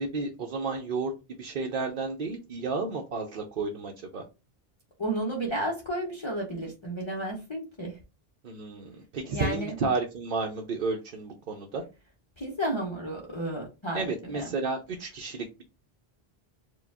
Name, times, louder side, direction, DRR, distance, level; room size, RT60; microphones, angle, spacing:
voice 1, 0.0-4.2 8.4-11.8 13.9-15.5, right 3 dB, 60° right, 1 dB, 0.7 m, -32 dB
voice 2, 5.0-8.0 9.3-9.8 12.4-14.5, right 1 dB, 30° left, -3 dB, 0.8 m, -32 dB
4.7 x 2.3 x 3.4 m, 0.29 s
omnidirectional pair, 1.0 m